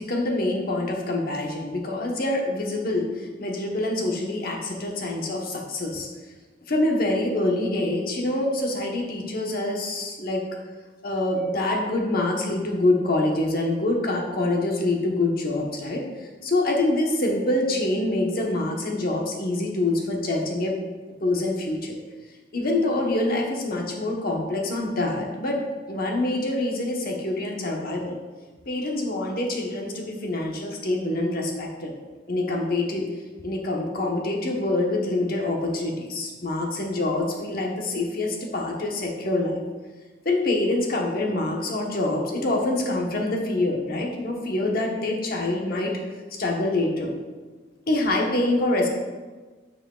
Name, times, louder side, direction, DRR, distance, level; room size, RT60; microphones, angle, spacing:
voice 1, 0.0-6.1 6.7-10.4 11.0-20.7 21.2-22.0 22.5-25.6 25.9-28.2 28.7-31.9 32.3-33.0 33.4-39.6 40.2-45.9 46.4-47.1 47.9-48.9, left 2 dB, 55° left, 0 dB, 1.0 m, -25 dB
9.0 x 4.8 x 2.3 m, 1.3 s
head